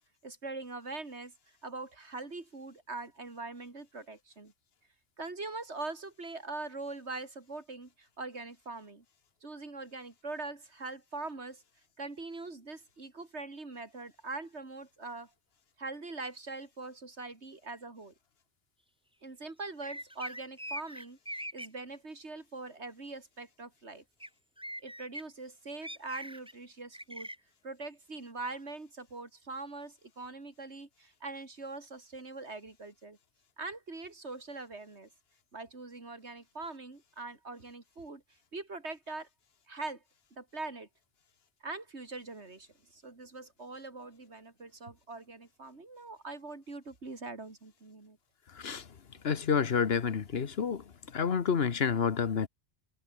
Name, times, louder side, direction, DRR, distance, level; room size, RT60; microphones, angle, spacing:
voice 1, 0.2-1.3 1.6-4.5 5.2-9.0 9.4-11.6 12.0-15.3 15.8-18.1 19.2-24.0 24.8-27.3 27.6-33.2 33.6-35.1 35.5-38.2 38.5-39.3 39.7-40.0 40.3-40.9 41.6-48.2, right 3 dB, 80° right, 3.5 m, -42 dB
sound 1, 19.8-21.7 24.2-24.3 24.6-25.2 25.8-26.5 26.9-27.4, equal, 5° right, 1.7 m, -41 dB
voice 2, 49.2-50.8 51.1-52.5, left 6 dB, 65° left, 1.4 m, -29 dB
omnidirectional pair, 1.1 m